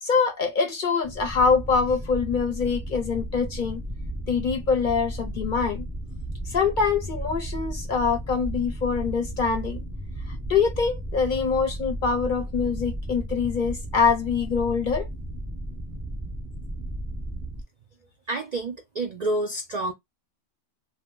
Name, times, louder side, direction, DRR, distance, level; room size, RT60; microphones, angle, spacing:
voice 1, 0.0-3.8 4.3-5.9 6.5-9.8 10.5-15.1, left 5 dB, 50° left, 0.7 m, -24 dB
sound 1, 1.0-17.6, right 1 dB, 10° right, 0.6 m, -34 dB
voice 2, 18.3-19.9, right 2 dB, 60° right, 0.4 m, -28 dB
2.6 x 2.1 x 3.7 m
omnidirectional pair, 1.2 m